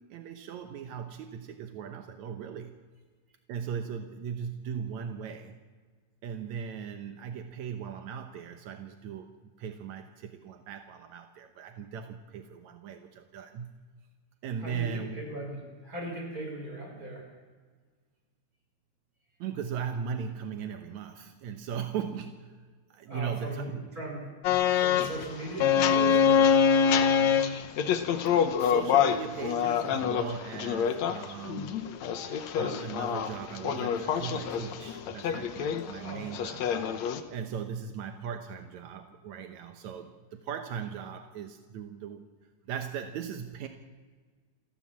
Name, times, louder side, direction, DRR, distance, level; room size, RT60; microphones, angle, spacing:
voice 1, 0.0-2.8 3.5-5.6 6.2-9.3 9.6-13.8 14.4-15.2 19.4-23.9 28.6-31.9 32.6-42.2 42.7-43.7, right 7 dB, 75° right, 6 dB, 1.7 m, -38 dB
voice 2, 14.6-17.2 23.1-24.3 24.7-26.6 35.9-36.3, right 1 dB, 20° right, 0 dB, 6.4 m, -38 dB
sound 1, 24.4-37.2, left 7 dB, 70° left, 1.7 m, -25 dB
28.5 x 13.0 x 7.5 m, 1.5 s
omnidirectional pair, 4.6 m